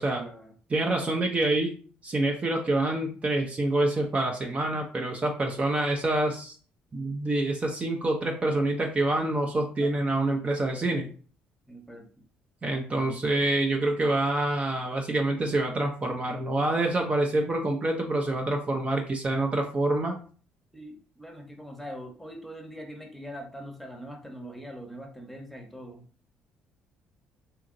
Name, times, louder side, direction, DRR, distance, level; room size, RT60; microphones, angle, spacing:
voice 1, 0.1-0.5 9.8-10.0 11.7-12.1 20.7-26.0, equal, 5° left, 3 dB, 0.8 m, -42 dB
voice 2, 0.7-1.8 2.0-6.5 6.9-11.1 12.6-20.2, right 2 dB, 30° right, 2 dB, 0.5 m, -26 dB
2.8 x 2.6 x 2.5 m, 0.42 s
supercardioid pair, 65°, 4 cm